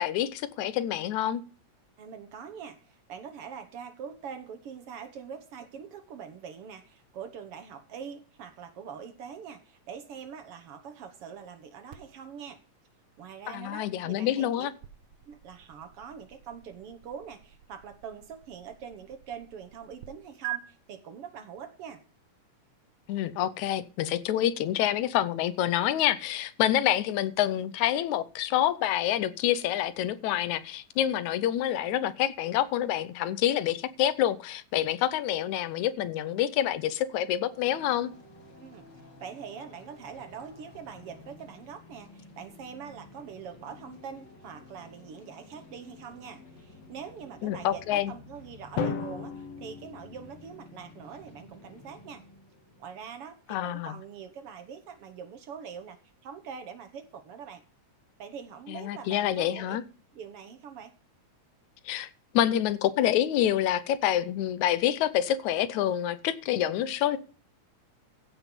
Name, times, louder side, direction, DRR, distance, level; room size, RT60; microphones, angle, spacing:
voice 1, 0.0-1.4 13.5-14.7 23.1-38.1 47.4-48.1 53.5-54.0 58.7-59.8 61.9-67.2, left 11 dB, 80° left, 2.2 m, -27 dB
voice 2, 2.0-12.6 13.2-14.7 15.3-22.0 38.6-52.2 52.8-57.6 58.2-59.8 60.1-60.9, right 7 dB, 60° right, 1.8 m, -44 dB
sound 1, 11.9-20.1 20.4-20.6, right 16 dB, 85° right, 2.3 m, -46 dB
sound 2, 37.5-53.8, left 3 dB, 40° left, 2.8 m, -52 dB
Drum, 48.8-50.9, left 6 dB, 60° left, 2.2 m, -35 dB
15.5 x 6.0 x 5.2 m
omnidirectional pair, 3.3 m